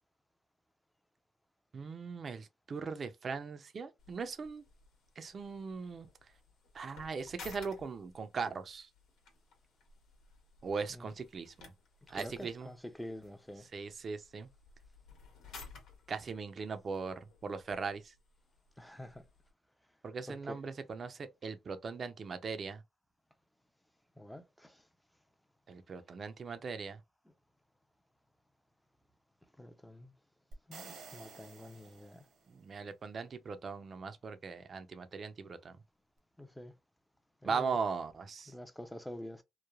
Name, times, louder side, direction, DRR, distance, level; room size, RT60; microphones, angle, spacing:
voice 1, 1.7-4.6 5.2-6.1 6.7-8.9 10.6-11.7 12.1-12.7 13.7-14.5 16.1-18.1 20.0-22.8 25.7-27.0 32.5-35.8 37.4-38.5, right 5 dB, 45° right, 0.5 m, -39 dB
sound 1, 4.0-19.5, left 4 dB, 85° left, 1.1 m, -57 dB
voice 2, 12.1-13.7 18.8-19.2 20.2-20.6 24.2-24.8 27.3-27.4 29.6-30.1 30.7-32.2 36.4-36.7 37.4-37.8 38.5-39.4, left 1 dB, 5° left, 0.5 m, -47 dB
sound 2, 30.5-32.6, right 4 dB, 80° right, 1.0 m, -52 dB
3.1 x 2.1 x 2.3 m
cardioid pair, 90°, 0 cm